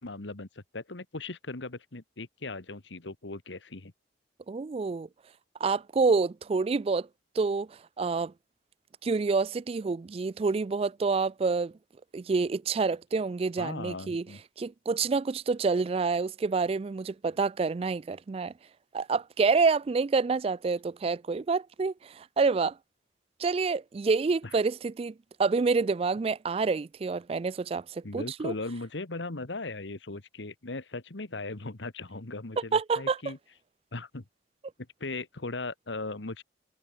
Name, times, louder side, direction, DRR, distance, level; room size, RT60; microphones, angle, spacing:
voice 1, 0.0-3.9 13.6-14.4 24.4-24.6 28.0-33.4 33.9-34.2 35.0-36.4, left 3 dB, 90° left, 1.6 m, -38 dB
voice 2, 4.5-5.1 5.6-7.1 7.4-7.7 8.0-8.3 9.0-11.7 12.1-14.2 14.6-18.5 18.9-22.7 23.4-25.1 25.4-28.5 32.7-33.2, right 4 dB, 35° right, 0.3 m, -27 dB
head